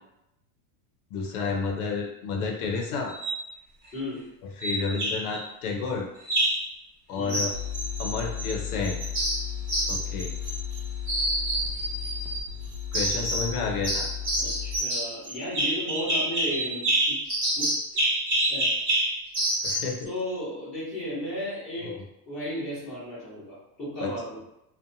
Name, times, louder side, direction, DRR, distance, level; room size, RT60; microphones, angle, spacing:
voice 1, 1.1-3.1 4.6-6.1 7.1-7.5 8.0-9.0 9.9-10.3 12.9-14.1 19.6-20.1 21.8-22.0 24.0-24.1, left 4 dB, 65° left, 2 dB, 0.6 m, -30 dB
sound 1, 3.1-3.4 4.6-5.4 6.2-6.7 7.3-8.5 8.8-10.8 11.1-12.4 12.9-13.5 13.8-19.9, right 1 dB, 25° right, 0.9 m, -27 dB
voice 2, 3.9-4.2 7.2-7.4 14.4-16.8 17.1-17.2 17.6-17.7 18.5-18.7 20.0-21.9 22.3-24.4, equal, ahead, -13 dB, 0.5 m, -34 dB
more feed back, 7.5-14.8, left 9 dB, 80° right, 0.7 m, -35 dB
2.6 x 2.1 x 2.6 m, 0.84 s
supercardioid pair, 170°, 49 cm